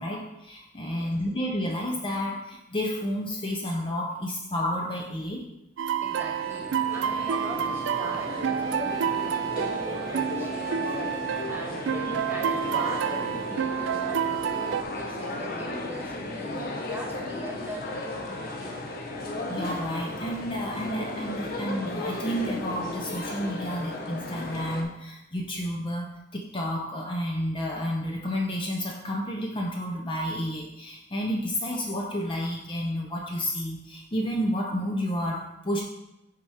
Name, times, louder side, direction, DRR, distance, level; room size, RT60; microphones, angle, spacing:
voice 1, 0.0-5.4 19.5-35.8, equal, 25° left, 0 dB, 0.6 m, -31 dB
sound 1, 5.8-14.8, right 8 dB, 75° right, 0.3 m, -29 dB
sound 2, 6.0-24.8, left 2 dB, 55° left, 1.0 m, -35 dB
voice 2, 6.0-16.6 16.9-18.8, equal, 10° right, -1 dB, 1.2 m, -41 dB
6.5 x 4.2 x 4.9 m, 0.89 s
head